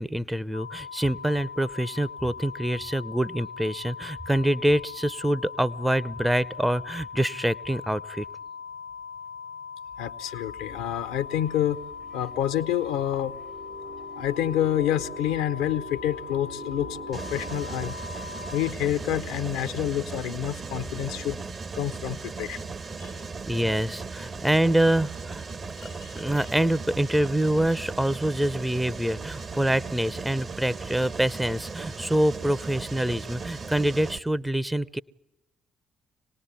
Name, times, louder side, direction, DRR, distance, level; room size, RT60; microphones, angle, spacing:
voice 1, 0.0-8.2 23.5-25.5 26.1-35.0, right 1 dB, 5° right, 18 dB, 0.8 m, -25 dB
sound 1, 0.5-18.7, left 6 dB, 85° right, 1.0 m, -40 dB
voice 2, 10.0-11.8 12.1-13.4 14.2-18.0 18.5-21.4 21.7-22.6 23.0-23.2 25.8-26.1, left 11 dB, 65° left, 12 dB, 0.9 m, -28 dB
sound 2, 10.7-21.3, right 4 dB, 55° right, 2.0 m, -46 dB
Mechanisms, 17.1-34.2, right 4 dB, 40° right, 1.2 m, -37 dB
25.5 x 19.0 x 9.1 m, 0.91 s
figure-of-eight pair, 45°, 0 cm